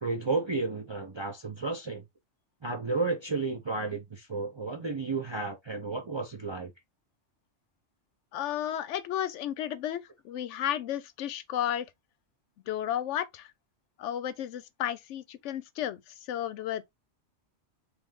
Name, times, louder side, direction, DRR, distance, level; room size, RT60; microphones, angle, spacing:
voice 1, 0.0-2.0 2.6-6.7, right 3 dB, 35° right, 0.5 m, -32 dB
voice 2, 8.3-11.9 12.7-13.5 14.0-16.9, left 11 dB, 85° left, 0.9 m, -33 dB
3.8 x 3.2 x 3.6 m
omnidirectional pair, 1.2 m